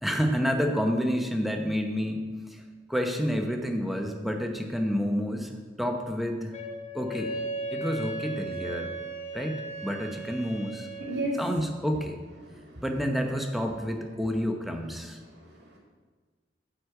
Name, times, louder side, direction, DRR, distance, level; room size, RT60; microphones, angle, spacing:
voice 1, 0.0-2.6 2.9-5.5 5.8-6.5 6.9-7.3 7.7-8.9 9.3-10.9 11.4-12.2 12.8-15.2, equal, ahead, 3 dB, 0.9 m, -29 dB
Wind instrument woodwind instrument, 6.5-11.2, right 2 dB, 40° left, 1.2 m, -36 dB
voice 2, 11.0-11.4 12.4-12.8 15.2-15.8, right 1 dB, 85° right, -2 dB, 2.0 m, -35 dB
9.3 x 5.1 x 7.9 m, 1.4 s
head